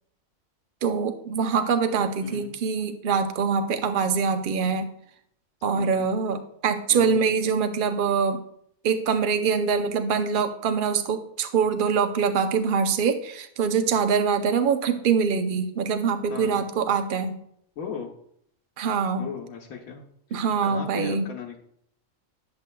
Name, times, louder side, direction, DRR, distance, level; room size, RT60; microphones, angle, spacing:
voice 1, 0.8-4.9 5.6-8.4 8.8-17.4 18.8-19.3 20.3-21.3, right 6 dB, 50° right, 8 dB, 0.7 m, -24 dB
voice 2, 2.2-2.5 5.7-6.1 6.9-7.2 16.3-16.6 17.8-18.1 19.2-20.0 20.3-21.6, left 6 dB, 80° left, 0 dB, 1.4 m, -37 dB
9.6 x 7.9 x 2.3 m, 0.69 s
omnidirectional pair, 1.4 m